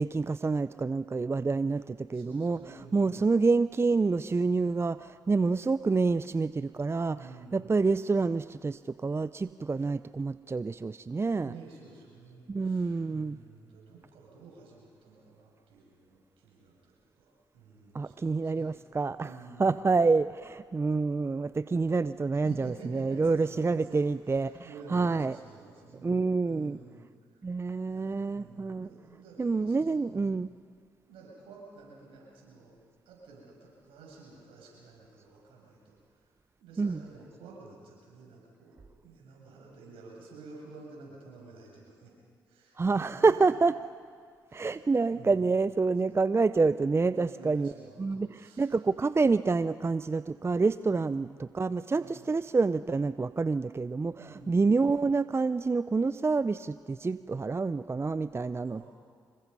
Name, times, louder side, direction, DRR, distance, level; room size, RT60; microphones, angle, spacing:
voice 1, 0.0-11.5 12.5-13.4 17.9-25.4 26.0-26.8 27.4-28.9 29.4-30.5 36.8-37.0 42.8-43.7 44.5-58.9, right 4 dB, 30° right, 15 dB, 0.5 m, -28 dB
voice 2, 2.1-3.3 7.1-7.7 11.4-16.9 17.2-18.7 19.1-19.9 22.4-24.0 24.3-27.1 27.9-30.4 31.1-32.8 33.1-36.0 36.6-42.1 42.5-43.3 44.5-44.8 45.1-45.4 46.0-46.2 47.0-48.6 50.9-51.3 51.9-52.3 54.2-54.6 58.7-58.9, right 4 dB, 75° right, -2 dB, 7.1 m, -50 dB
26.5 x 22.0 x 5.5 m, 2.1 s
hypercardioid pair, 40°, 9 cm